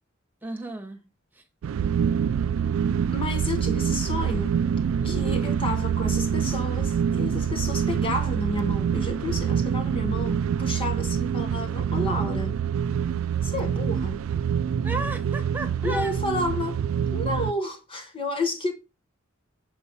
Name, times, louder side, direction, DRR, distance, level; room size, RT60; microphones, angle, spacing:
voice 1, 0.4-1.0 1.3-1.4 5.0-5.4 14.8-16.1, right 2 dB, 10° right, 1.5 m, -34 dB
sound 1, 1.6-17.5, right 7 dB, 85° right, 0.3 m, -26 dB
voice 2, 3.1-4.6 5.0-12.6 13.4-14.2 15.8-16.8 17.1-18.7, left 1 dB, 25° left, 1.2 m, -31 dB
8.4 x 4.1 x 5.3 m
head